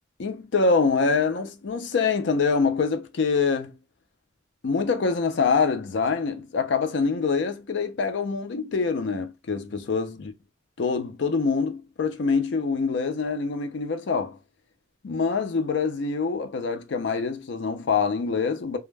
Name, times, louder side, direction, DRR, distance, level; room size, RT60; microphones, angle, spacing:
voice 1, 0.2-3.7 4.6-10.3 10.8-14.4 15.0-18.8, left 4 dB, 80° left, 0.5 m, -25 dB
2.2 x 2.0 x 3.2 m
head